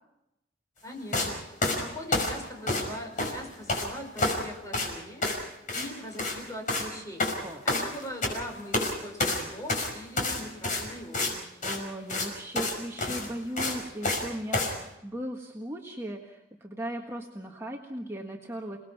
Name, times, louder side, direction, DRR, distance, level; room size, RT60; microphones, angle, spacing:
voice 1, 0.8-11.5, left 1 dB, 20° left, 2 dB, 5.4 m, -41 dB
sound 1, 1.1-1.3 1.6-2.9 3.2-3.9 4.2-4.4 4.7-4.9 5.2-5.4 5.7-5.9 6.1-6.4 6.7-6.9 7.2-8.4 8.7-8.9 9.2-11.3 11.6-11.8 12.1-12.3 12.5-12.7 13.0-14.2 14.5-14.7, left 2 dB, 45° left, 5.6 m, -28 dB
voice 2, 11.6-18.8, equal, 15° right, 0 dB, 1.5 m, -37 dB
28.5 x 19.5 x 5.9 m, 0.90 s
head